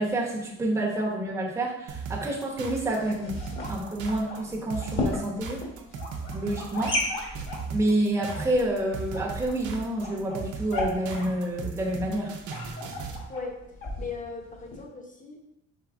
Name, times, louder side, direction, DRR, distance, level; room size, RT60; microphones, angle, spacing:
voice 1, 0.0-3.4 3.7-5.7 6.3-7.4 7.7-12.3, right 1 dB, 10° right, -3 dB, 0.9 m, -28 dB
sound 1, 1.9-13.3, right 5 dB, 75° right, 0.7 m, -37 dB
sound 2, 2.5-14.8, left 2 dB, 40° left, 1.3 m, -36 dB
voice 2, 14.0-15.4, left 4 dB, 25° left, 1 dB, 0.9 m, -38 dB
4.7 x 2.9 x 3.6 m, 0.85 s
cardioid pair, 90°, 30 cm